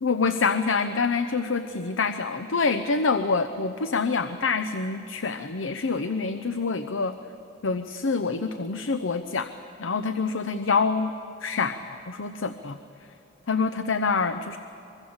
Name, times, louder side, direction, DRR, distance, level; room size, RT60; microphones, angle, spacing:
voice 1, 0.0-7.2 7.6-9.5 9.8-11.1 11.4-12.8 13.5-14.6, left 4 dB, 90° left, 9 dB, 0.7 m, -26 dB
24.0 x 23.0 x 7.2 m, 2.6 s
head